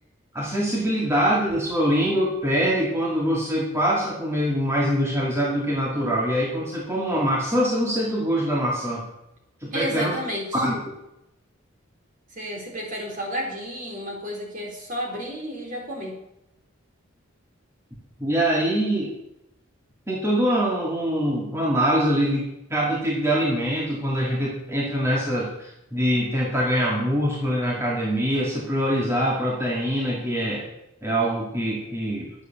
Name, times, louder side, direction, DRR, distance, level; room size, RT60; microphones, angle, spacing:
voice 1, 0.3-9.0 9.6-10.2 10.5-10.8 18.2-19.1 20.1-30.6 31.0-32.3, equal, 15° right, -4 dB, 2.1 m, -24 dB
voice 2, 9.7-10.7 12.3-16.1, equal, 40° right, 0 dB, 3.8 m, -32 dB
11.5 x 8.2 x 7.3 m, 0.85 s
head